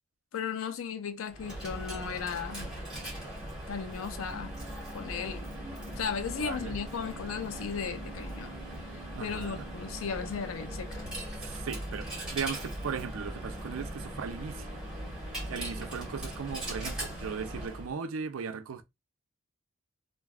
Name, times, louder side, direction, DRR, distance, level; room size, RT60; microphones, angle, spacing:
voice 1, 0.3-2.7 3.7-4.5 4.9-5.5 6.0-8.5 9.2-11.1, left 6 dB, 85° left, 0.4 m, -36 dB
Coin (dropping), 1.3-17.9, right 1 dB, 5° right, 1.3 m, -39 dB
voice 2, 6.4-6.8 9.1-9.7 11.4-14.7 15.5-18.8, right 6 dB, 85° right, 0.5 m, -37 dB
3.4 x 2.2 x 2.3 m
head